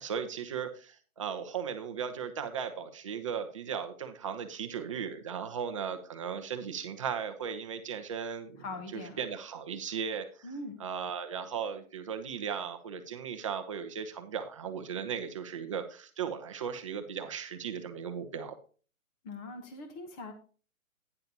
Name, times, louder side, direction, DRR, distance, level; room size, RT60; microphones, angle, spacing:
voice 1, 0.0-8.7 8.9-10.5 10.8-18.6, right 7 dB, 25° right, 8 dB, 0.7 m, -37 dB
voice 2, 8.6-9.2 10.4-10.8 19.2-20.3, left 2 dB, 10° left, 6 dB, 0.8 m, -41 dB
11.5 x 9.6 x 2.8 m, 0.38 s
hypercardioid pair, 155°, 42 cm